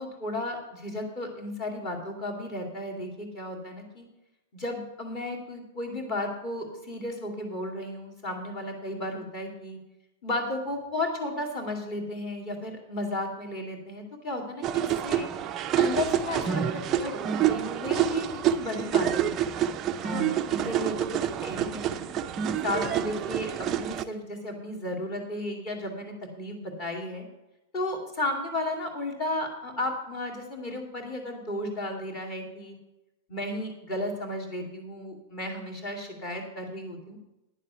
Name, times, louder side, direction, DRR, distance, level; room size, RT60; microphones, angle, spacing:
voice 1, 0.0-4.1 4.5-9.8 10.2-15.3 15.8-19.5 20.0-22.0 22.6-23.5 23.8-27.3 27.7-32.8 33.3-37.2, left 1 dB, 25° left, 2 dB, 2.3 m, -34 dB
sound 1, 14.6-24.0, right 10 dB, 20° right, 0.5 m, -28 dB
10.5 x 7.3 x 6.7 m, 0.96 s
supercardioid pair, 175°, 0 cm